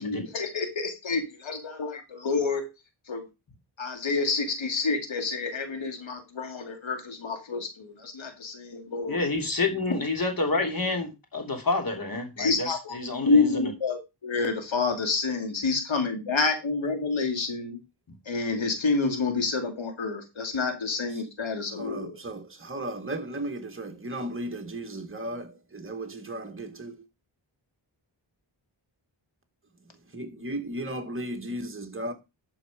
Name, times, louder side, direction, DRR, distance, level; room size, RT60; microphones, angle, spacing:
voice 1, 0.0-2.6 3.1-3.2 3.8-9.2 9.8-9.9 12.4-13.0 13.2-17.8 18.3-22.2, left 4 dB, 75° left, 2.5 m, -28 dB
voice 2, 9.1-13.7, left 3 dB, 45° left, 3.1 m, -28 dB
voice 3, 21.8-27.1 30.1-32.1, right 1 dB, 25° right, 1.9 m, -35 dB
12.0 x 4.8 x 5.0 m
wide cardioid pair, 80°, 47 cm